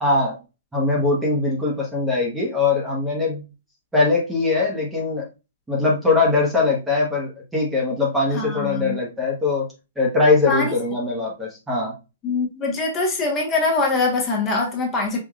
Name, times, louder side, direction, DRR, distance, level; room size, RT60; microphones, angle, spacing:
voice 1, 0.0-0.4 0.7-3.4 3.9-5.3 5.7-9.7 10.0-11.9, left 3 dB, 5° right, 1.0 m, -21 dB
voice 2, 8.3-9.0 10.5-10.7 12.2-15.2, left 3 dB, 20° left, 1.1 m, -23 dB
4.8 x 2.6 x 2.4 m
hypercardioid pair, 145°, 0 cm